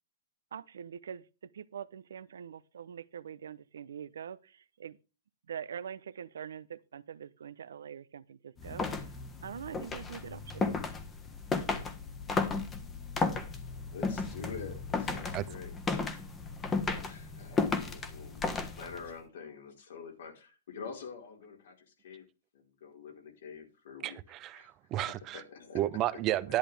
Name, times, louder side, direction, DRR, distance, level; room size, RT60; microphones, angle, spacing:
voice 1, 0.5-5.0 5.5-8.9 9.4-10.7, right 8 dB, 85° right, 0.7 m, -44 dB
sound 1, 8.6-19.1, left 4 dB, 20° left, 1.4 m, -34 dB
voice 2, 13.9-15.7 17.0-22.3 22.5-24.2 24.5-24.7 25.3-25.8 26.5-26.6, left 5 dB, 75° left, 4.6 m, -46 dB
voice 3, 24.0-25.4 25.7-26.6, right 14 dB, 30° right, 0.8 m, -32 dB
11.0 x 10.0 x 3.4 m
hypercardioid pair, 135°, 0 cm